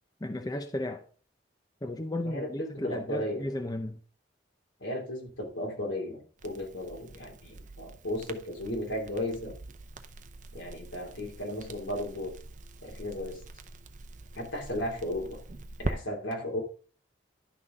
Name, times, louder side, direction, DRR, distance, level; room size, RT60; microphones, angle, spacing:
voice 1, 0.2-1.0 1.8-4.0, left 1 dB, 20° left, 0.6 m, -34 dB
voice 2, 2.2-3.4 4.8-9.6 10.5-12.4 12.8-13.4 14.4-15.4 15.8-16.6, left 1 dB, 85° left, 2.9 m, -35 dB
Crackle, 6.4-15.9, right 2 dB, 40° right, 0.7 m, -43 dB
11.0 x 6.1 x 3.7 m
head